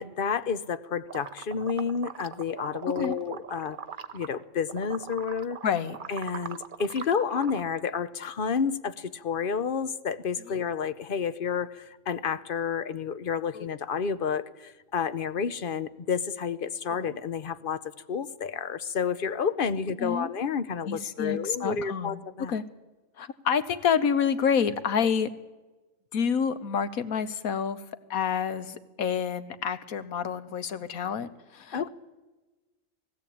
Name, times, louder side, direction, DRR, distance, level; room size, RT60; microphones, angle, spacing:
voice 1, 0.0-3.8 4.1-5.6 6.1-17.8 18.1-22.6 31.7-31.9, left 6 dB, 45° left, 12 dB, 0.8 m, -30 dB
sound 1, 1.1-4.4 4.7-7.6, right 7 dB, 45° right, 0.8 m, -41 dB
voice 2, 5.6-6.0 10.5-10.6 13.5-13.7 20.0-20.3 20.8-22.6 23.2-25.3 26.1-27.8 28.1-31.9, left 7 dB, 85° left, 12 dB, 1.5 m, -28 dB
19.0 x 16.5 x 8.5 m, 1.2 s
omnidirectional pair, 1.5 m